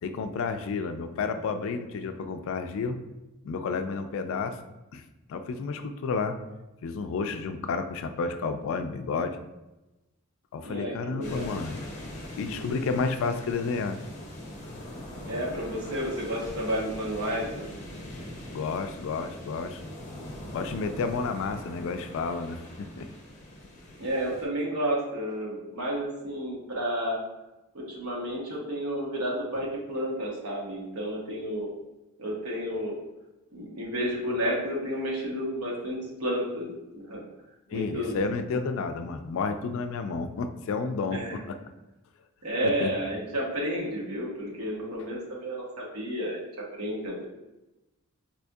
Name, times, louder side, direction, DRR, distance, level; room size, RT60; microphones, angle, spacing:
voice 1, 0.0-3.0 3.4-4.6 4.9-5.0 5.3-6.4 6.8-9.4 10.5-11.8 12.4-14.0 18.5-19.8 20.5-23.1 29.5-29.7 37.7-41.6 42.6-42.9, left 4 dB, 65° left, 8 dB, 0.3 m, -31 dB
voice 2, 10.6-11.5 15.3-17.7 24.0-27.2 27.7-31.7 32.2-33.0 33.5-36.7 36.9-37.2 37.7-38.2 41.1-41.4 42.4-46.4 46.8-47.3, equal, 75° right, -3 dB, 1.0 m, -31 dB
sound 1, 11.2-24.5, left 1 dB, 35° left, 0.7 m, -42 dB
4.2 x 2.6 x 2.3 m, 1.0 s
head